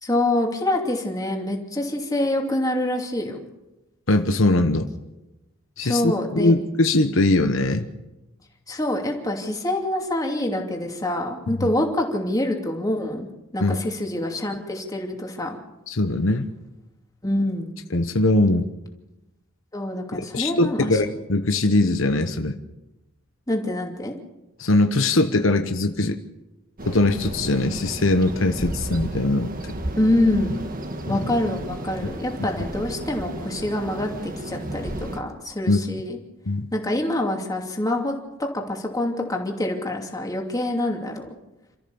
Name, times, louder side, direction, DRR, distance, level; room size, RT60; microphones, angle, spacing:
voice 1, 0.0-3.4 5.8-6.5 8.7-15.6 17.2-17.7 19.7-21.2 23.5-24.1 30.0-30.5 31.1-36.2 36.7-41.3, left 1 dB, 15° left, 1 dB, 2.7 m, -26 dB
voice 2, 4.1-4.9 5.8-7.9 11.5-11.7 13.6-13.8 15.9-16.5 17.9-18.7 20.1-22.6 24.6-26.2 26.8-29.8 31.1-31.2 35.7-35.8 36.5-36.7, left 2 dB, 70° left, 7 dB, 1.1 m, -21 dB
sound 1, 26.8-35.2, right 1 dB, 40° right, 1.7 m, -33 dB
28.0 x 14.0 x 7.1 m, 1.0 s
head